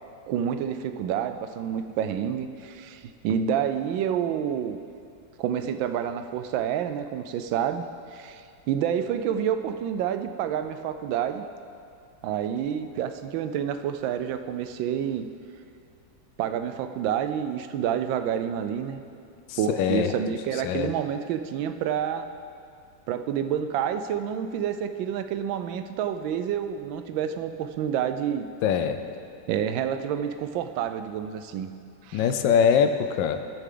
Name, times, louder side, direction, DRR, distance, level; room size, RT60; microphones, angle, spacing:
voice 1, 0.3-4.8 5.4-7.8 8.1-11.5 12.2-15.3 16.4-19.0 19.6-22.3 23.1-28.5 29.5-31.7 32.0-32.3, right 9 dB, 90° right, 9 dB, 1.3 m, -28 dB
voice 2, 19.5-20.1 20.6-20.9 28.6-29.0 32.1-33.4, left 7 dB, 80° left, 9 dB, 1.3 m, -23 dB
12.5 x 8.2 x 3.8 m, 2.5 s
omnidirectional pair, 2.0 m